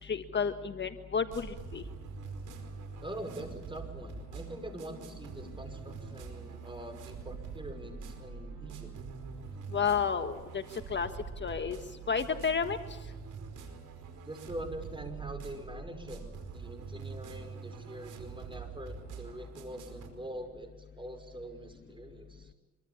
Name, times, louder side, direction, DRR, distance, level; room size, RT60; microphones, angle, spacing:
voice 1, 0.0-1.8 9.7-11.1 11.4-11.8 12.1-12.8, left 6 dB, 35° left, 8 dB, 1.6 m, -31 dB
sound 1, 1.3-20.1, right 5 dB, 80° right, 5.1 m, -45 dB
voice 2, 3.0-8.9 14.2-16.2 16.5-22.5, right 1 dB, 15° right, 8 dB, 5.5 m, -44 dB
26.0 x 24.0 x 7.2 m, 1.2 s
cardioid pair, 90°, 30 cm